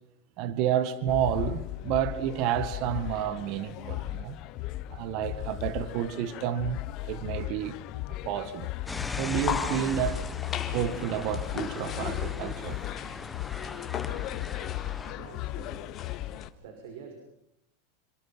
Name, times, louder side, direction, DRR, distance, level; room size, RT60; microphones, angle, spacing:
voice 1, 0.4-4.4 4.9-7.8 8.3-8.7 9.2-10.2 10.7-12.8, right 10 dB, 55° right, 1.9 m, -30 dB
sound 1, 1.1-16.5, left 16 dB, 50° left, 1.0 m, -36 dB
sound 2, 8.8-16.5, left 7 dB, 30° left, 3.6 m, -39 dB
sound 3, 8.9-15.1, left 3 dB, 10° left, 1.2 m, -40 dB
voice 2, 15.1-16.0 16.6-17.1, right 6 dB, 70° right, 5.9 m, -47 dB
28.5 x 26.0 x 5.9 m
supercardioid pair, 125°, 0 cm